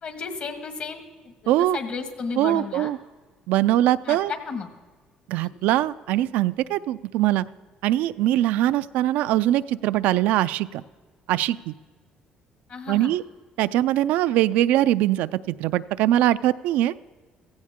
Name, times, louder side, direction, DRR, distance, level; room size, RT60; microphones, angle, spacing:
voice 1, 0.0-2.9 4.0-4.7 12.7-13.2, left 5 dB, 55° left, 7 dB, 1.7 m, -33 dB
voice 2, 1.5-1.8 2.4-3.0 3.5-4.3 5.3-7.4 7.8-10.8 11.3-11.7 12.9-13.2 13.6-16.9, right 14 dB, 85° right, 14 dB, 0.4 m, -22 dB
16.0 x 15.5 x 3.6 m, 1.4 s
cardioid pair, 95°, 3 cm